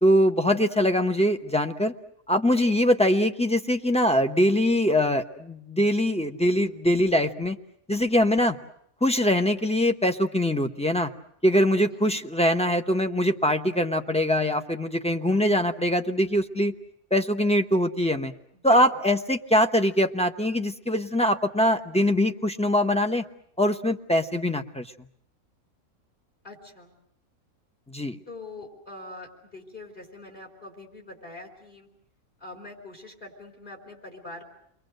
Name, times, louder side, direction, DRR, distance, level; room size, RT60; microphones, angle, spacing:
voice 1, 0.0-1.9 2.3-7.6 7.9-8.6 9.0-11.1 11.4-16.7 17.1-18.3 18.6-23.2 23.6-24.8 27.9-28.2, equal, 5° left, 6 dB, 0.6 m, -23 dB
voice 2, 18.5-19.0 26.4-26.9 28.3-31.9 32.4-34.4, left 2 dB, 30° left, 3 dB, 4.7 m, -43 dB
30.0 x 22.5 x 6.5 m, 0.69 s
omnidirectional pair, 1.6 m